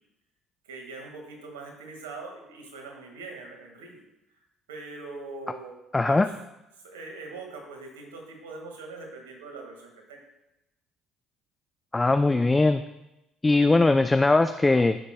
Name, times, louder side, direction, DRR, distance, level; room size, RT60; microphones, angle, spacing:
voice 1, 0.6-4.1 4.7-5.8 6.0-6.3 6.8-10.2, right 3 dB, 85° right, 2 dB, 1.8 m, -42 dB
voice 2, 5.9-6.3 11.9-12.8 13.4-15.0, left 2 dB, 20° left, 9 dB, 0.4 m, -20 dB
14.5 x 6.8 x 2.2 m, 0.91 s
hypercardioid pair, 60°, 0 cm